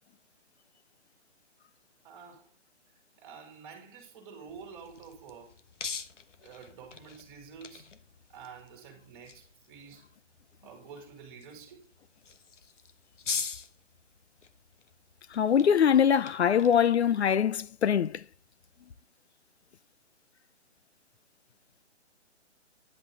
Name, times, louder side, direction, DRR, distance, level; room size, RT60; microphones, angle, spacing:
voice 1, 2.0-2.5 3.2-5.6 6.4-7.9 8.3-10.1 10.6-11.9, right 6 dB, 20° right, 2.9 m, -49 dB
sound 1, 4.5-19.0, left 5 dB, 80° left, 1.3 m, -44 dB
voice 2, 15.3-18.2, left 8 dB, 65° left, 0.6 m, -23 dB
10.5 x 8.0 x 3.9 m
hypercardioid pair, 165°, 36 cm